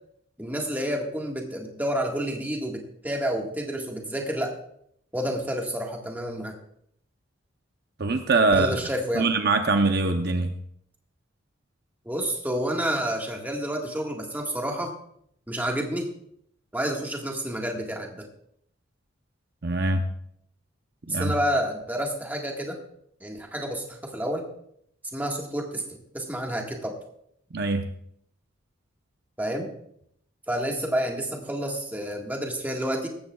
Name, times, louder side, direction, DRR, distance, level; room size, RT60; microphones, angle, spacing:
voice 1, 0.4-4.5 5.1-6.5 8.5-9.3 12.0-14.9 15.5-16.1 16.7-18.2 21.1-22.8 23.2-24.4 25.1-27.0 29.4-29.7 30.5-33.1, equal, 10° right, 1 dB, 1.6 m, -29 dB
voice 2, 8.0-8.8 9.1-10.5 19.6-20.1 21.1-21.3 27.5-27.9, right 3 dB, 50° right, 6 dB, 0.7 m, -23 dB
17.0 x 14.0 x 2.3 m, 0.70 s
head